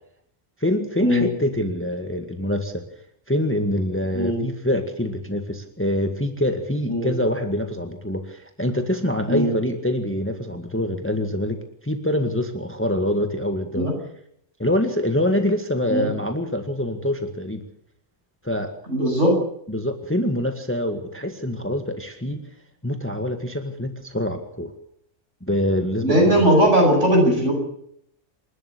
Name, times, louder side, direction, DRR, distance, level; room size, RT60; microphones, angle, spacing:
voice 1, 0.6-2.8 3.3-11.6 11.8-13.9 14.6-17.6 18.4-18.7 19.7-22.4 22.8-24.7 25.4-26.7, left 1 dB, 10° left, 6 dB, 1.9 m, -25 dB
voice 2, 18.9-19.4 26.0-27.5, equal, 60° right, 0 dB, 8.5 m, -18 dB
28.0 x 12.5 x 8.5 m, 0.70 s
omnidirectional pair, 1.4 m